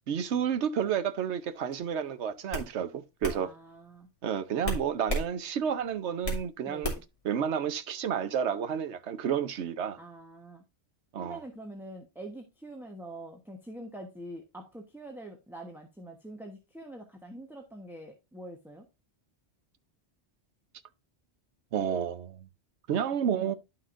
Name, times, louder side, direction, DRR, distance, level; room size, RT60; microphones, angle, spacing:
voice 1, 0.1-3.5 4.2-6.9 7.2-10.0 11.1-11.4 21.7-22.5 22.9-23.6, right 8 dB, 85° right, 1.1 m, -30 dB
sound 1, 1.7-1.9 2.5-2.7 3.2-3.4 4.6-5.3 5.7-6.5 6.8-7.2, equal, 30° left, 2.9 m, -32 dB
voice 2, 3.2-4.1 6.6-7.0 10.0-10.6 11.1-18.8, right 1 dB, ahead, 1.1 m, -45 dB
11.5 x 5.8 x 2.6 m
omnidirectional pair, 1.1 m